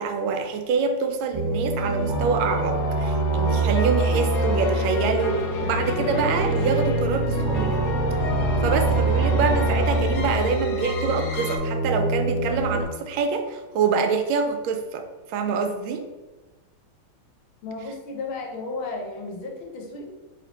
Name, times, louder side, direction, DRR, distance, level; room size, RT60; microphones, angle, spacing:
voice 1, 0.0-7.9 8.6-16.0, right 5 dB, 80° right, 6 dB, 1.4 m, -26 dB
sound 1, 1.3-12.8, right 2 dB, 15° right, 1.3 m, -25 dB
sound 2, 1.8-11.6, left 1 dB, 70° left, 1.0 m, -30 dB
voice 2, 17.6-20.1, left 3 dB, 90° left, 1 dB, 1.7 m, -33 dB
3.6 x 3.3 x 3.9 m, 1.2 s
omnidirectional pair, 2.2 m